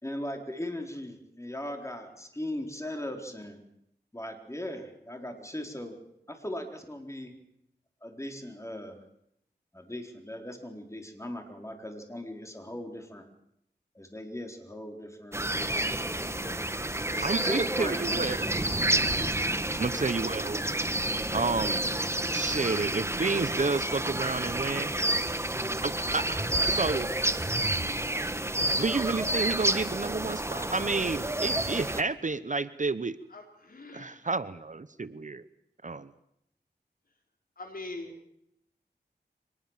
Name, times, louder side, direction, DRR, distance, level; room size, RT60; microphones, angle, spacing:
voice 1, 0.0-3.6 4.1-6.0 6.3-7.3 8.0-9.0 9.7-13.3 13.9-18.0 19.9-20.1, left 1 dB, 15° left, 4 dB, 4.1 m, -39 dB
sound 1, 15.3-32.0, right 1 dB, 15° right, 1.2 m, -29 dB
voice 2, 17.2-18.4 19.8-20.6 21.3-21.8 22.3-24.9 25.8-27.1 28.6-33.2 33.9-35.4 35.8-36.1, right 3 dB, 45° right, 14 dB, 0.9 m, -30 dB
voice 3, 33.3-34.2 37.6-38.1, left 2 dB, 55° left, 3 dB, 4.5 m, -42 dB
24.5 x 20.0 x 7.4 m, 0.77 s
wide cardioid pair, 80°, 18 cm